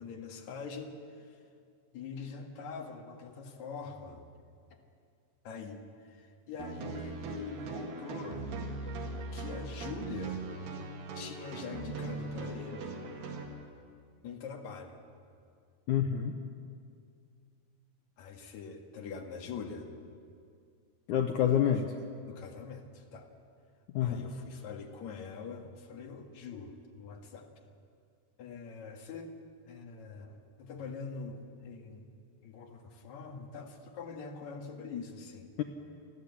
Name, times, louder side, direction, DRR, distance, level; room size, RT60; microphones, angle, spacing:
voice 1, 0.0-1.4 1.9-4.2 4.7-4.8 5.4-8.4 9.3-10.4 11.1-13.0 14.2-15.0 18.2-19.9 21.8-21.9 22.3-23.3 24.0-27.5 28.4-29.3 29.7-32.1 32.4-35.5, left 5 dB, 55° left, 3 dB, 2.6 m, -44 dB
sound 1, 6.6-13.4, right 3 dB, 80° right, 4.0 m, -40 dB
voice 2, 15.9-16.4 21.1-21.9 23.9-24.3 35.6-35.7, left 9 dB, 80° left, 5 dB, 1.8 m, -27 dB
29.5 x 11.5 x 8.5 m, 2.3 s
omnidirectional pair, 4.6 m